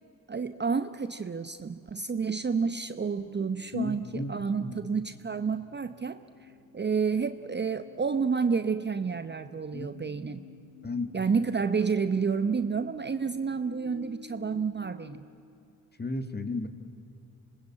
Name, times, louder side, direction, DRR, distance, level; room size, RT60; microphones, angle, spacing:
voice 1, 0.3-10.4 11.1-15.2, right 5 dB, 25° right, 11 dB, 0.9 m, -30 dB
sound 1, 2.9-15.2, left 5 dB, 80° left, 3.4 m, -53 dB
voice 2, 3.7-4.8 9.7-9.9 10.8-11.2 16.0-16.7, left 2 dB, 20° left, 10 dB, 2.0 m, -34 dB
26.5 x 21.0 x 8.6 m, 2.7 s
hypercardioid pair, 55°, 44 cm